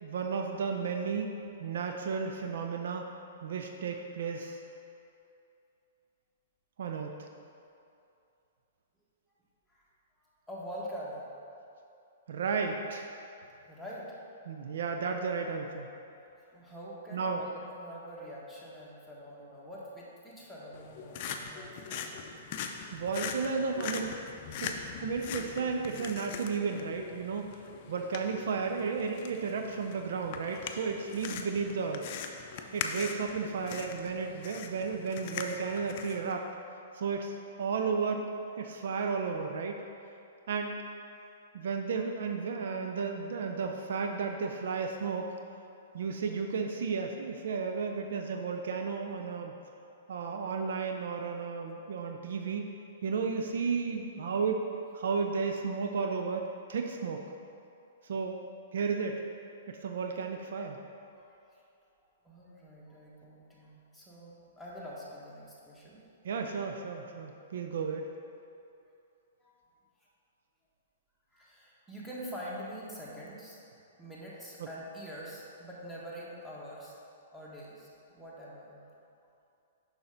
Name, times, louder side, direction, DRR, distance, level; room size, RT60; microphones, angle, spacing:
voice 1, 0.0-3.0 3.4-4.6 6.8-7.3 12.3-13.1 14.5-15.9 17.1-17.4 22.9-24.2 24.6-27.6 27.9-32.1 32.7-36.4 36.9-38.3 38.6-39.8 40.5-40.8 41.5-45.3 45.9-49.5 50.1-52.7 53.0-54.6 54.9-57.2 58.1-58.4 58.7-59.2 59.7-60.8 66.2-68.1 74.6-74.7, right 5 dB, 65° right, 4 dB, 0.5 m, -33 dB
voice 2, 10.2-11.3 13.7-14.1 16.5-22.6 41.1-41.3 61.1-61.6 62.2-66.0 69.4-69.5 71.3-73.6 74.0-77.0 77.3-78.8, equal, ahead, -7 dB, 1.6 m, -45 dB
sound 1, 20.7-36.3, left 6 dB, 50° left, 0.5 m, -41 dB
7.0 x 5.6 x 3.9 m, 2.6 s
hypercardioid pair, 115°, 0 cm